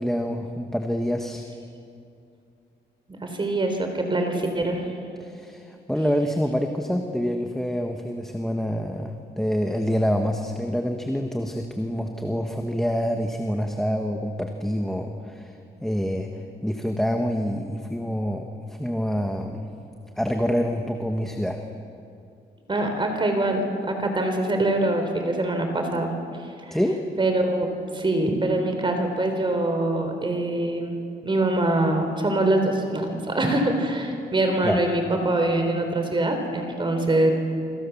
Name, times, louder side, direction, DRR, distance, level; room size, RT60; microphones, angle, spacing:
voice 1, 0.0-1.4 5.2-16.3 16.6-18.5 18.8-19.7 20.2-21.6 26.7-27.0 34.6-34.8, equal, ahead, 3 dB, 1.6 m, -26 dB
voice 2, 3.2-4.8 22.7-26.1 26.7-26.8 27.2-27.7 27.9-30.9 31.2-37.3, right 2 dB, 25° right, 5 dB, 3.8 m, -24 dB
29.0 x 26.0 x 7.2 m, 2.5 s
cardioid pair, 130°, 18 cm